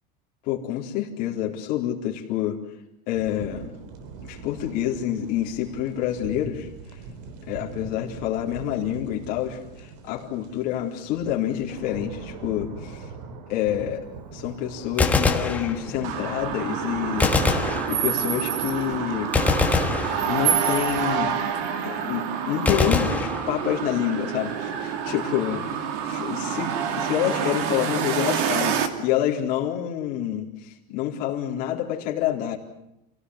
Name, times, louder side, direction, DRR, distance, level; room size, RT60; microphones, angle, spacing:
voice 1, 0.4-2.6 3.1-3.7 4.2-6.7 7.5-13.1 13.5-14.0 14.3-17.4 17.9-19.3 20.3-21.6 21.8-32.6, left 11 dB, 45° left, 0 dB, 4.1 m, -28 dB
sound 1, 3.1-21.3, right 4 dB, 75° right, 4.1 m, -41 dB
Gunshot gunfire, 14.8-16.2 17.2-18.4 19.3-20.8 22.7-24.0, left 4 dB, 5° left, 1.5 m, -24 dB
sound 2, 16.0-28.9, right 7 dB, 55° right, 2.6 m, -27 dB
28.0 x 18.0 x 9.8 m, 0.83 s
cardioid pair, 175°, 21 cm